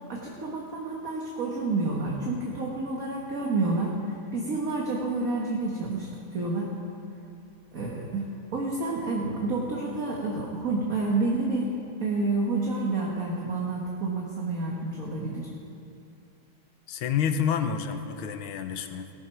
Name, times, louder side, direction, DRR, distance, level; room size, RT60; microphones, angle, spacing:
voice 1, 0.1-6.7 7.7-11.7 12.0-15.5, right 3 dB, 45° right, -2 dB, 1.6 m, -29 dB
voice 2, 16.9-19.1, left 7 dB, 80° left, 8 dB, 1.6 m, -28 dB
18.0 x 12.5 x 4.6 m, 2.7 s
omnidirectional pair, 2.3 m